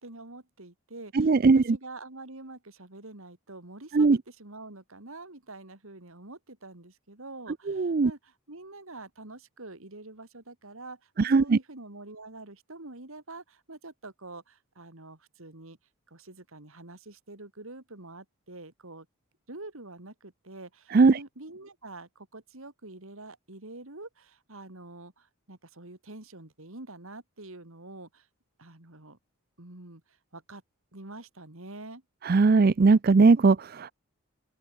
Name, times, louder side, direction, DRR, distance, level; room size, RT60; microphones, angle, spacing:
voice 1, 0.0-15.8 16.1-19.1 19.5-28.3 28.6-29.2 29.6-30.6 30.9-32.0, right 2 dB, 70° right, 2.9 m, -46 dB
voice 2, 1.1-1.8 3.9-4.2 7.7-8.1 11.2-11.6 20.9-21.2 32.2-33.9, right 4 dB, 40° right, 0.4 m, -20 dB
open air
head